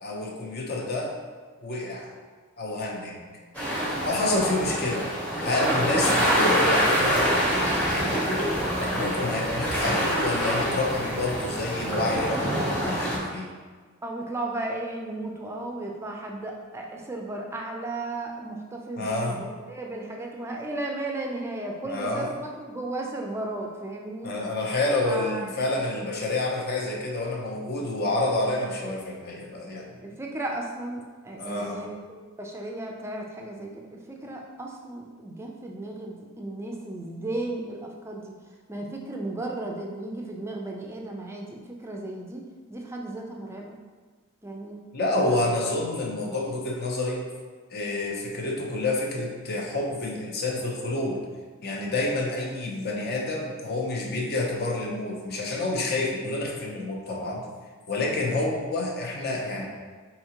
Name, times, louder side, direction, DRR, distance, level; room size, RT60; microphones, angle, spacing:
voice 1, 0.0-1.2 1.6-2.1 2.6-3.2 4.0-5.1 5.4-7.4 7.9-8.4 8.8-13.5 19.0-19.4 21.8-22.3 24.2-30.0 31.4-31.8 44.9-47.2 47.7-51.2 51.6-57.4 57.9-59.6, left 2 dB, 50° left, -1 dB, 0.6 m, -28 dB
sound 1, 3.5-13.2, equal, 5° left, 0.8 m, -25 dB
voice 2, 14.0-24.3 25.1-25.6 30.0-38.4 38.7-42.4 42.7-43.8 44.4-44.8, right 2 dB, 10° right, 0 dB, 0.3 m, -35 dB
4.6 x 2.8 x 2.8 m, 1.5 s
head